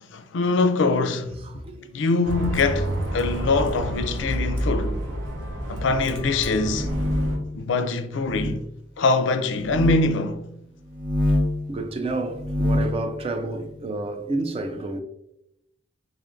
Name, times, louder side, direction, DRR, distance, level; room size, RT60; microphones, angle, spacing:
voice 1, 0.1-1.4 1.7-5.0 5.7-6.9 7.5-8.6 9.0-10.4, left 3 dB, 75° left, 0.4 m, -23 dB
Bus, 2.2-7.4, equal, 75° right, 0.7 m, -29 dB
sound 1, 6.5-7.5 8.2-8.6 9.6-10.0 10.9-11.6 12.3-13.0, left 1 dB, 45° right, 0.9 m, -25 dB
voice 2, 11.7-15.0, right 2 dB, 30° right, 0.3 m, -29 dB
3.5 x 3.5 x 2.5 m
head